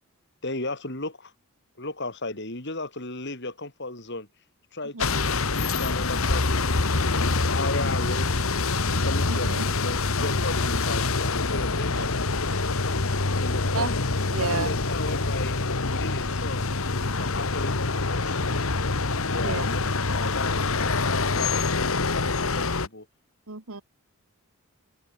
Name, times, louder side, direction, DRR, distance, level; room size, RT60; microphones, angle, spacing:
voice 1, 0.4-1.3 1.8-4.3 4.7-5.5 5.8-8.4 9.0-12.1 13.4-14.0 14.4-15.6 15.9-18.4 19.1-23.1, left 2 dB, 50° left, 5.7 m, -35 dB
sound 1, 5.0-22.9, left 3 dB, 70° left, 1.6 m, -25 dB
voice 2, 9.3-9.6 11.9-12.1 13.7-13.9 14.3-14.7 19.4-19.6 23.5-23.8, right 4 dB, 70° right, 1.7 m, -31 dB
head